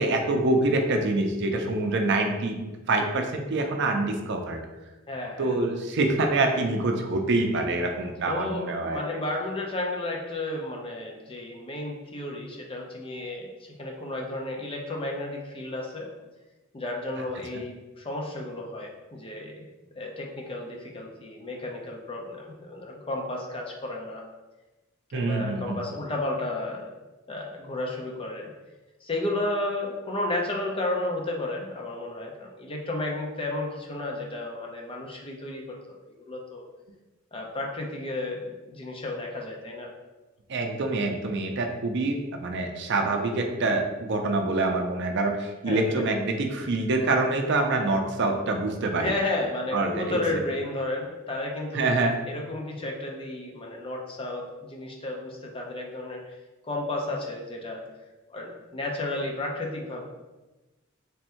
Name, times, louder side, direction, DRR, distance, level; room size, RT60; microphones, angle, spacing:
voice 1, 0.0-4.6 5.4-9.0 25.1-25.8 40.5-49.1 49.7-50.4 51.7-52.2, right 2 dB, 60° right, 4 dB, 0.5 m, -26 dB
voice 2, 5.1-5.6 8.3-16.1 16.7-19.7 20.0-24.2 25.1-26.9 27.3-28.5 29.0-36.6 37.3-39.9 45.7-46.0 49.0-56.4 56.6-57.8 58.3-60.0, left 2 dB, 25° left, 0 dB, 0.6 m, -33 dB
3.5 x 2.6 x 4.3 m, 1.1 s
head